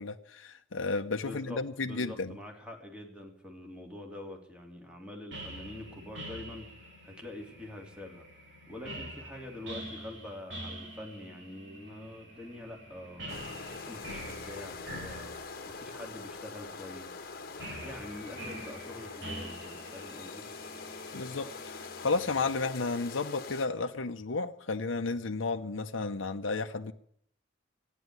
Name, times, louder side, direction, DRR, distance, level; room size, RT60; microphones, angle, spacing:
voice 1, 0.0-2.4 21.1-26.9, left 3 dB, 85° left, 0.8 m, -33 dB
voice 2, 1.2-8.2 8.7-13.2 13.6-15.3 15.7-17.3 17.8-20.5, left 1 dB, 5° right, 3.0 m, -45 dB
sound 1, 5.3-22.6, right 1 dB, 70° right, 5.8 m, -46 dB
sound 2, 13.3-23.7, left 4 dB, 50° left, 1.3 m, -44 dB
14.5 x 10.0 x 9.5 m
head